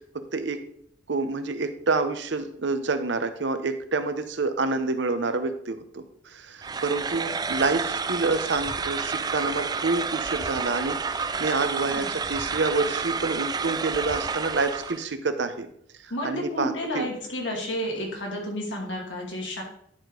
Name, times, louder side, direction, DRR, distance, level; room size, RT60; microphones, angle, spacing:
voice 1, 0.3-0.6 1.1-15.7 16.0-17.1, right 3 dB, 70° right, 9 dB, 0.8 m, -28 dB
sound 1, 6.6-15.0, right 5 dB, 20° right, 0.3 m, -30 dB
voice 2, 16.1-19.6, equal, 75° left, -1 dB, 2.5 m, -31 dB
10.5 x 5.1 x 3.8 m, 0.67 s
head